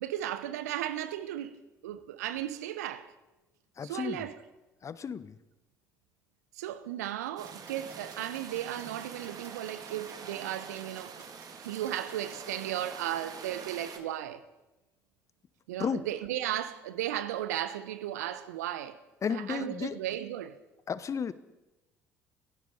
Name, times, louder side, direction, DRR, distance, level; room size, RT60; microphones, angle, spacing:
voice 1, 0.0-3.1 3.8-4.4 6.6-11.1 11.6-14.4 15.7-19.0 19.3-20.6, right 12 dB, 75° right, 1.1 m, -35 dB
voice 2, 3.8-4.3 4.8-5.3 15.8-16.1 19.2-20.0 20.9-21.3, left 7 dB, 35° left, 1.0 m, -33 dB
sound 1, 7.4-12.4, right 4 dB, 30° right, 6.5 m, -57 dB
sound 2, 7.4-14.0, right 6 dB, 45° right, 2.3 m, -45 dB
29.0 x 16.5 x 5.4 m
figure-of-eight pair, 55°, 9 cm